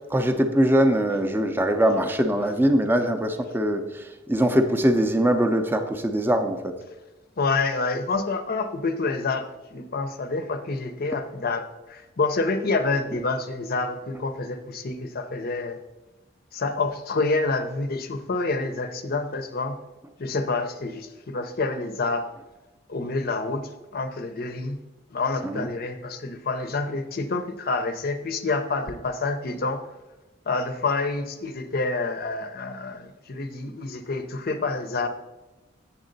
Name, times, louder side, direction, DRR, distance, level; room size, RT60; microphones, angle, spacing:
voice 1, 0.1-6.7 25.4-25.7, equal, 10° right, 6 dB, 0.5 m, -22 dB
voice 2, 7.4-15.8 16.5-19.8 20.2-22.3 22.9-24.8 25.1-29.8 30.5-35.1, left 3 dB, 50° left, 9 dB, 0.6 m, -28 dB
7.5 x 7.1 x 3.9 m, 1.1 s
head